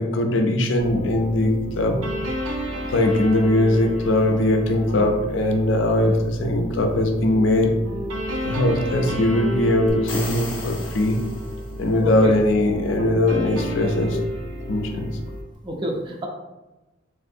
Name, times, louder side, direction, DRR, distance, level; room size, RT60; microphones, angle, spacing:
voice 1, 0.0-2.0 2.9-7.7 8.4-11.2 11.8-14.2 14.7-15.1, left 1 dB, 70° left, 3 dB, 0.4 m, -20 dB
sound 1, 0.8-15.4, equal, 85° right, 0.6 m, -32 dB
voice 2, 6.5-6.8 12.0-12.3 15.6-16.3, right 1 dB, 25° right, 0 dB, 0.4 m, -29 dB
sound 2, 9.9-12.0, left 2 dB, 25° left, 0.5 m, -35 dB
3.6 x 2.5 x 2.6 m, 1.0 s
head